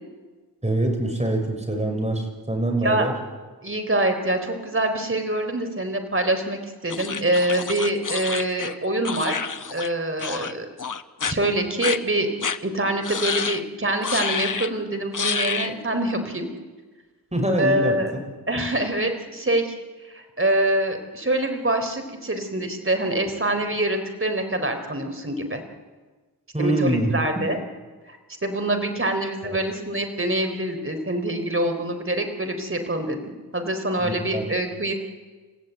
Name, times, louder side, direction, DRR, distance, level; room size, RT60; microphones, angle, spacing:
voice 1, 0.6-3.1 17.3-18.2 26.5-27.1 29.4-29.6 34.0-34.5, right 1 dB, 20° right, 3 dB, 6.1 m, -24 dB
voice 2, 3.6-10.7 11.2-12.3 12.6-16.5 17.6-18.1 18.5-19.7 20.0-25.6 26.6-27.6 28.1-28.2 28.4-33.2 33.5-34.9, right 1 dB, 35° right, 5 dB, 3.8 m, -25 dB
sound 1, 6.9-9.9 10.2-10.5 10.8-11.3 11.8-12.0 12.4-12.6 13.0-13.6 14.0-14.7 15.1-15.7, left 5 dB, 55° left, 1.0 m, -28 dB
29.5 x 15.0 x 9.1 m, 1.3 s
wide cardioid pair, 65°, 37 cm